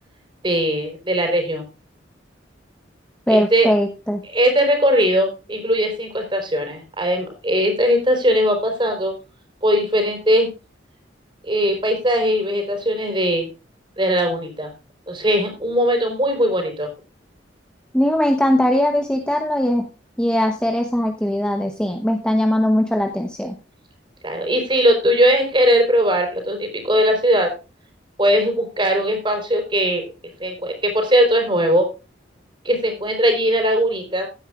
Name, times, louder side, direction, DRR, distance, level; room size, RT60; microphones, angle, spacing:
voice 1, 0.4-1.7 3.3-3.7 4.2-9.1 9.6-10.5 11.4-13.5 14.0-14.7 15.1-16.9 24.2-27.5 28.2-30.1 30.4-31.9 32.6-34.3, equal, 25° right, 4 dB, 4.1 m, -19 dB
voice 2, 3.3-4.2 17.9-19.9 20.2-23.5, left 1 dB, 5° left, 3 dB, 1.0 m, -20 dB
15.5 x 9.7 x 2.4 m, 0.29 s
head